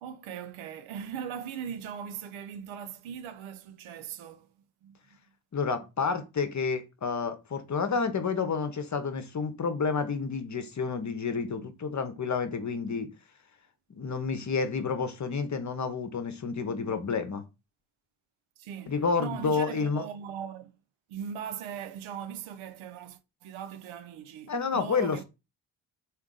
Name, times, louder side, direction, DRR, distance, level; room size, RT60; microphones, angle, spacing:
voice 1, 0.0-4.5 4.8-5.0 18.6-20.8 21.1-25.2, right 8 dB, 70° right, 0.7 m, -40 dB
voice 2, 5.5-13.1 13.9-17.4 18.9-20.0 24.5-25.2, left 5 dB, 35° left, 0.9 m, -30 dB
3.6 x 2.7 x 3.8 m
hypercardioid pair, 45°, 50 cm